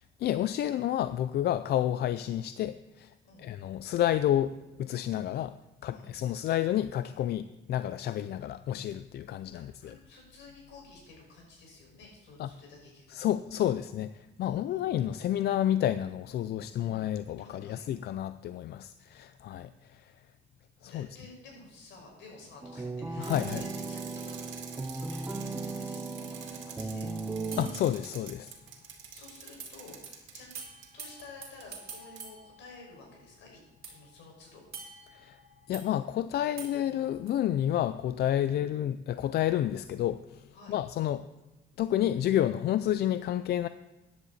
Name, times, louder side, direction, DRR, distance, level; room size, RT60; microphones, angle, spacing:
voice 1, 0.2-3.1 3.4-9.9 12.4-12.5 13.1-20.1 20.8-21.1 23.2-23.6 27.6-28.5 35.1-35.4 35.7-41.3 41.8-43.7, left 11 dB, 60° left, 13 dB, 0.4 m, -30 dB
voice 2, 9.5-13.3 14.4-14.9 16.7-16.9 17.4-17.9 20.9-24.3 24.9-27.1 29.1-30.5 30.9-33.6 33.8-34.6 38.4-38.5 40.5-40.8 42.7-42.9, left 3 dB, 80° left, -1 dB, 5.4 m, -52 dB
sound 1, 22.6-27.7, right 3 dB, 10° right, 0.6 m, -36 dB
Bicycle, 23.2-30.9 31.6-31.7 31.9-32.2, right 7 dB, 90° right, 2.3 m, -47 dB
sound 2, 27.5-28.7 29.6-29.7 30.0-30.1 30.5-33.3 33.8-35.9 36.6-37.3, right 5 dB, 55° right, 2.8 m, -47 dB
14.5 x 10.5 x 4.1 m, 1.1 s
cardioid pair, 160°, 19 cm